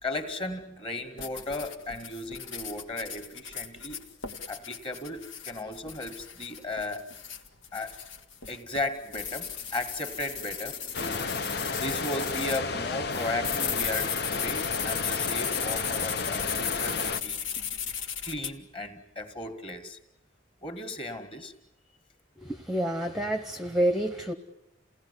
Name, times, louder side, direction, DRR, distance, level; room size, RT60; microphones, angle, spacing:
voice 1, 0.0-4.0 4.5-7.1 7.7-8.0 8.5-11.3 11.7-17.4 18.2-20.0 20.6-21.5, left 2 dB, 25° left, 7 dB, 2.1 m, -36 dB
sound 1, 1.2-12.6 13.1-18.5, left 7 dB, 80° left, 1.7 m, -36 dB
sound 2, 10.9-17.2, left 4 dB, 55° left, 0.9 m, -32 dB
voice 2, 22.4-24.3, right 1 dB, ahead, 6 dB, 1.0 m, -28 dB
28.5 x 18.0 x 9.8 m, 0.86 s
head